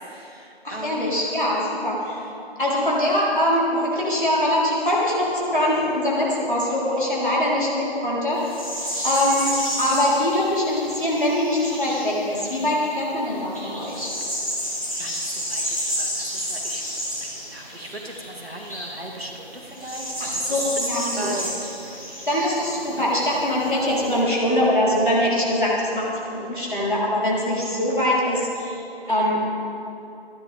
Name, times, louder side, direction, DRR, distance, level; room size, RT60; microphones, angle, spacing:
voice 1, 0.0-1.1 15.0-16.8 17.2-22.2 22.9-23.1 29.0-29.3, right 1 dB, 65° right, 0 dB, 2.3 m, -38 dB
voice 2, 0.6-2.2 2.6-8.5 9.0-14.1 20.2-21.3 22.3-28.8 29.1-29.4, left 1 dB, 50° left, -6 dB, 3.9 m, -23 dB
sound 1, 8.4-12.8 13.2-24.2, equal, 30° left, 2.8 m, -31 dB
26.0 x 10.5 x 3.5 m, 2.8 s
figure-of-eight pair, 175°, 32 cm